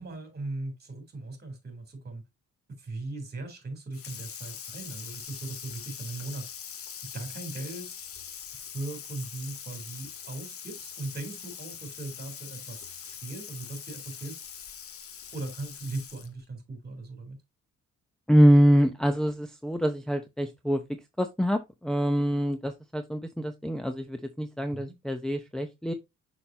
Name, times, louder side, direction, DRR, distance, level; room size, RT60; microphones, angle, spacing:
voice 1, 0.0-2.2 2.8-6.5 7.1-8.0 8.7-14.4 15.3-17.4 24.7-25.0, right 2 dB, 35° right, 3.5 m, -39 dB
Water tap faucet / Sink (filling or washing), 3.9-16.4, left 8 dB, 50° left, 1.0 m, -43 dB
voice 2, 18.3-20.8 21.2-25.9, equal, ahead, 0.7 m, -24 dB
6.4 x 5.8 x 2.8 m
cardioid pair, 90°, 30 cm